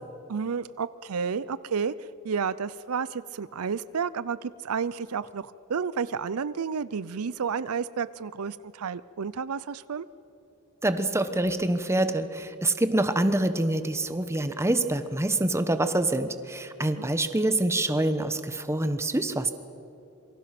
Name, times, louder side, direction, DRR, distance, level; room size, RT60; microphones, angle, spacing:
voice 1, 0.3-1.9 2.2-10.1 16.8-17.1, right 6 dB, 85° right, 17 dB, 0.6 m, -31 dB
voice 2, 10.8-19.5, right 1 dB, 15° right, 10 dB, 1.1 m, -26 dB
27.0 x 24.0 x 6.0 m, 2.8 s
head